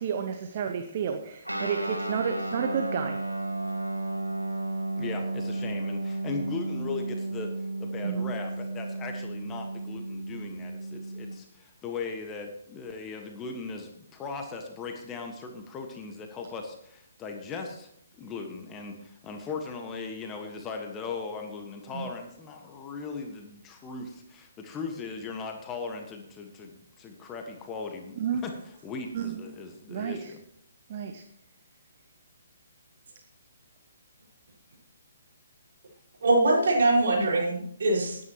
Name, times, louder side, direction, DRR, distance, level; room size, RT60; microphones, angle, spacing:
voice 1, 0.0-3.2 8.0-8.3 21.9-22.1 28.2-28.4 29.1-29.4 29.9-30.3 30.9-31.2, right 7 dB, 40° right, 6 dB, 1.0 m, -31 dB
Guitar, 1.4-11.4, right 2 dB, 90° right, 2.0 m, -33 dB
voice 2, 5.0-17.9 18.2-28.5 28.8-30.4, left 4 dB, 15° left, 4 dB, 1.5 m, -38 dB
voice 3, 36.2-38.2, right 2 dB, 55° right, -3 dB, 5.4 m, -23 dB
18.5 x 9.7 x 3.0 m, 0.70 s
figure-of-eight pair, 135°, 0 cm